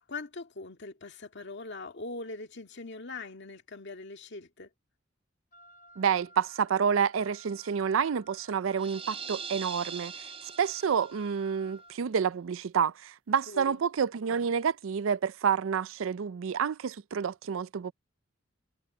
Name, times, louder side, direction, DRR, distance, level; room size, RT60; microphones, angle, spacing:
voice 1, 0.0-4.7 13.5-13.8, left 3 dB, 60° left, 2.0 m, -41 dB
Wind instrument woodwind instrument, 5.5-12.0, right 1 dB, 45° left, 3.0 m, -55 dB
voice 2, 6.0-10.3 10.6-17.9, right 7 dB, 80° right, 0.4 m, -29 dB
sound 1, 8.8-11.3, right 6 dB, 30° right, 3.2 m, -41 dB
head